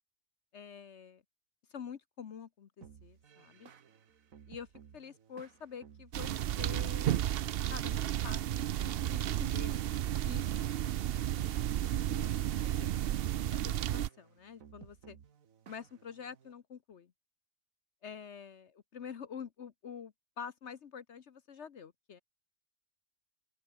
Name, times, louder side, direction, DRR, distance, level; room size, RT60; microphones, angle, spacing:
voice 1, 0.5-1.2 1.7-2.7 3.0-3.7 4.5-4.7 4.9-7.1 7.7-9.8 10.2-10.5 11.0-12.9 13.5-15.2 15.7-17.1 18.0-22.2, left 7 dB, 60° left, 1.2 m, -47 dB
sound 1, 2.8-16.5, right 7 dB, 85° right, 1.7 m, -57 dB
sound 2, 6.1-14.1, right 12 dB, 60° right, 0.6 m, -33 dB
open air
omnidirectional pair, 1.4 m